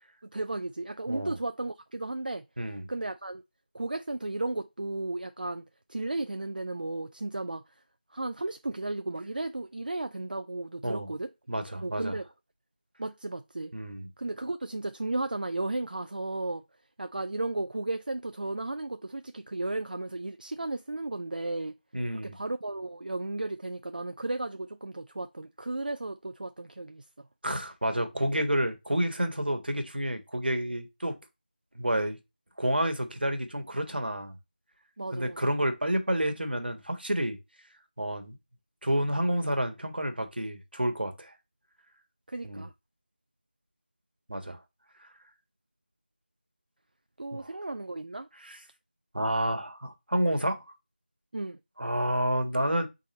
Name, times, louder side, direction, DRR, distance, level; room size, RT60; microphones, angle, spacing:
voice 1, 0.3-2.4 2.9-3.4 3.7-7.6 8.1-11.3 11.8-12.3 13.0-13.7 14.2-16.6 17.0-21.7 22.2-27.3 35.0-35.5 42.3-42.7 47.2-48.3 51.3-51.6, right 2 dB, 60° right, 0.4 m, -34 dB
voice 2, 1.1-1.4 2.6-2.9 10.8-11.1 11.5-12.2 13.7-14.1 21.9-22.4 27.4-31.2 31.7-32.2 32.6-34.3 35.1-37.4 38.0-38.4 38.8-41.3 42.4-42.7 44.3-44.6 47.3-47.6 48.4-48.6 49.1-50.6 51.8-52.9, right 1 dB, 80° right, 1.3 m, -29 dB
4.0 x 3.7 x 3.1 m
figure-of-eight pair, 170°, 5 cm